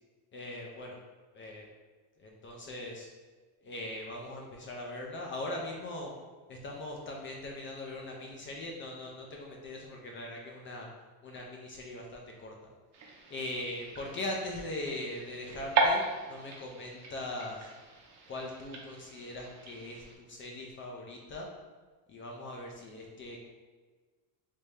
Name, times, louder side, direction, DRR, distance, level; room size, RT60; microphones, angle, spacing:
voice 1, 0.3-1.0 1.3-1.6 2.2-3.1 3.6-6.1 6.5-10.9 11.2-12.5 13.3-17.7 18.3-21.5 22.1-23.5, left 1 dB, 30° left, -1 dB, 0.4 m, -40 dB
sound 1, 12.9-20.1, right 3 dB, 40° right, 0.6 m, -36 dB
3.4 x 2.6 x 3.2 m, 1.4 s
cardioid pair, 130°, 45 cm